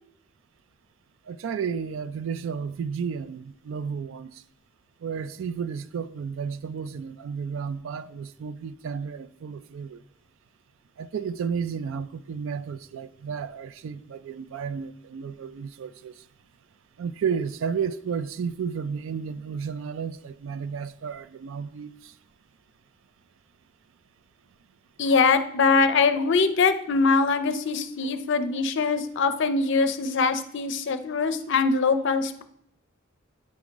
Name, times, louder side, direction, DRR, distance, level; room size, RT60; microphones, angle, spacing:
voice 1, 1.3-4.4 5.0-10.0 11.0-16.2 17.0-22.1, right 6 dB, 70° right, 0.3 m, -32 dB
voice 2, 25.0-32.4, left 4 dB, 60° left, 0.5 m, -23 dB
8.7 x 3.6 x 3.8 m
head